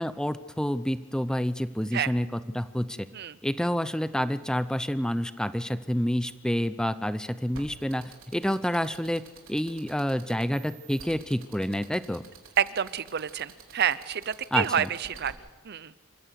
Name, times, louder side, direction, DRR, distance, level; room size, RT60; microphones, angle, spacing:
voice 1, 0.0-3.1 3.4-9.2 9.5-12.2 14.5-14.9, equal, 5° left, 13 dB, 0.7 m, -28 dB
sound 1, 7.5-15.3, right 5 dB, 85° right, 3.5 m, -48 dB
voice 2, 12.6-15.3 15.6-15.9, right 8 dB, 50° right, 16 dB, 0.7 m, -28 dB
27.0 x 15.0 x 6.5 m, 1.2 s
head